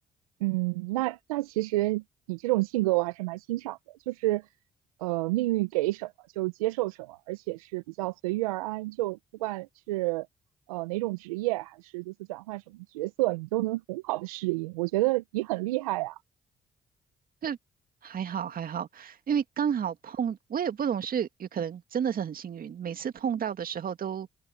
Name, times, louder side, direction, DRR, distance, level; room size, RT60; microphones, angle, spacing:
voice 1, 0.4-4.4 5.0-10.3 10.7-16.2, right 20 dB, 85° right, 1.1 m, -30 dB
voice 2, 18.0-24.3, right 8 dB, 55° right, 2.3 m, -31 dB
open air
hypercardioid pair, 45°, 18 cm